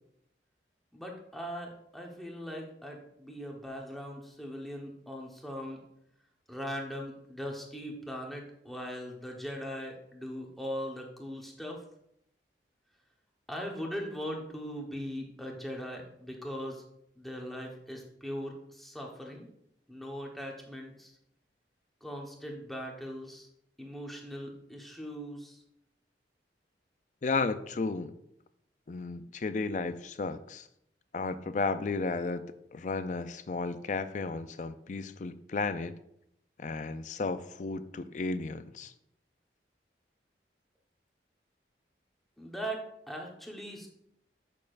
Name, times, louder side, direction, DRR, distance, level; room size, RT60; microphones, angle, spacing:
voice 1, 0.9-5.8 6.5-11.8 13.5-16.8 17.2-19.5 19.9-21.1 22.0-23.5 23.8-25.6 42.4-43.9, equal, ahead, -1 dB, 1.1 m, -40 dB
voice 2, 27.2-28.1 28.9-30.6 31.1-36.0 36.6-38.9, left 3 dB, 45° left, 12 dB, 0.4 m, -33 dB
8.3 x 6.7 x 2.5 m, 0.75 s
head